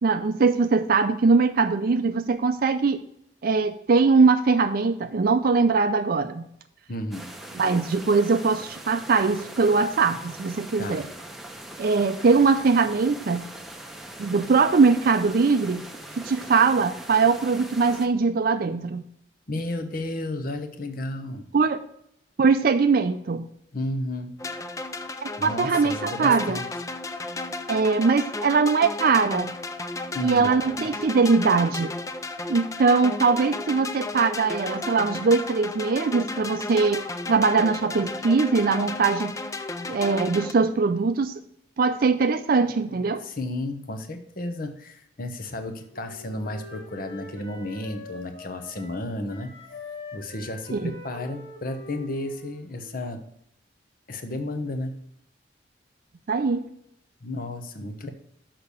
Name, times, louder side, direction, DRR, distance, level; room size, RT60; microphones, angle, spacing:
voice 1, 0.0-3.0 3.4-6.5 7.6-11.1 11.8-13.4 14.2-15.8 16.2-19.0 21.5-21.8 22.4-23.5 25.2-26.6 27.7-29.5 30.2-31.9 32.5-39.3 39.9-41.3 41.8-43.2 50.7-50.9 56.3-56.6, right 4 dB, 50° right, 9 dB, 0.4 m, -21 dB
voice 2, 6.9-7.3 10.8-11.0 19.5-21.4 23.7-24.3 25.4-26.6 30.1-30.5 43.2-49.5 50.1-53.2 54.1-54.9 57.2-58.1, left 1 dB, 50° left, 7 dB, 1.0 m, -32 dB
sound 1, 7.1-18.1, right 1 dB, ahead, 0.8 m, -41 dB
sound 2, 24.4-40.5, left 2 dB, 15° left, 0.4 m, -34 dB
Wind instrument woodwind instrument, 45.5-49.0 49.3-53.1, left 2 dB, 65° left, 1.9 m, -44 dB
6.6 x 5.9 x 6.8 m, 0.72 s
head